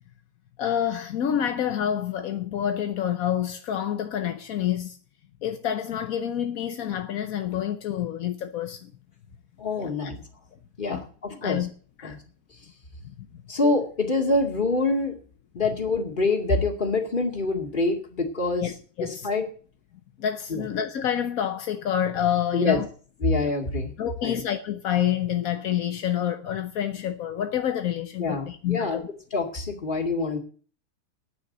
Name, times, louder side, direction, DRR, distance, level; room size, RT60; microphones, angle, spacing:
voice 1, 0.6-5.0 5.4-8.9 9.8-9.9 10.9-11.0 11.4-11.7 12.0-12.2 13.2-13.3 18.6-18.7 19.0-19.3 20.2-22.9 24.0-29.1, left 10 dB, 65° left, 0.9 m, -28 dB
voice 2, 9.6-10.2 10.8-11.7 12.0-12.2 13.5-15.2 15.5-18.7 19.0-19.5 20.5-20.6 22.5-22.8 23.2-23.9 24.2-24.4 28.2-29.0 29.3-30.4, left 3 dB, 25° left, 2.3 m, -25 dB
9.6 x 9.2 x 7.9 m
omnidirectional pair, 2.3 m